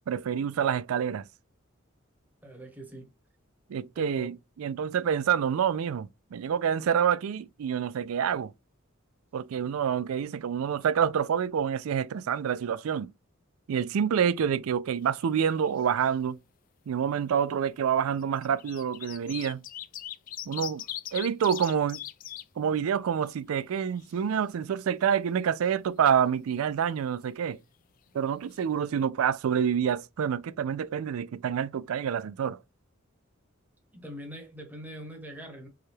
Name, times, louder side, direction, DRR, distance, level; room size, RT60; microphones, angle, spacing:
voice 1, 0.1-1.3 3.7-8.5 9.3-13.1 13.7-16.4 16.9-19.6 20.5-20.8 21.1-22.0 22.6-27.6 28.1-32.6, right 8 dB, 80° right, 0.4 m, -27 dB
voice 2, 2.4-3.1 4.0-4.3 33.9-35.7, equal, 10° right, 1.1 m, -43 dB
sound 1, 15.0-15.7 16.0-16.1 17.2-17.3 18.2-22.4 22.9-23.0 23.3-24.3 28.2-28.3 28.5-28.6, left 12 dB, 40° left, 0.3 m, -40 dB
4.7 x 2.3 x 3.1 m
head